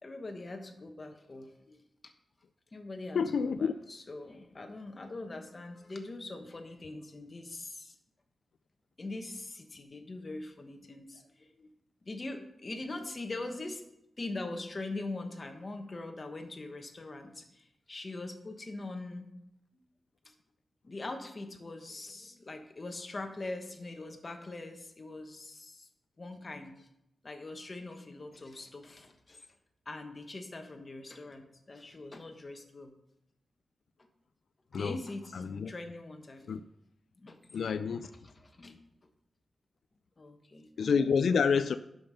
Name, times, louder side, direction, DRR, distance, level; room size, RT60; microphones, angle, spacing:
voice 1, 0.0-2.1 2.7-7.9 9.0-11.7 12.0-13.8 14.2-19.3 20.2-20.3 20.8-25.9 26.2-26.9 27.2-29.5 29.9-32.9 34.7-36.5 37.2-37.7 38.1-38.8 40.2-41.2, left 2 dB, 35° left, 1.2 m, -42 dB
voice 2, 3.1-3.7 34.7-35.0 35.3-35.7 36.5-36.6 37.5-38.1 40.8-41.8, left 6 dB, 85° left, 0.3 m, -28 dB
11.0 x 5.3 x 5.6 m
wide cardioid pair, 120°, 0 cm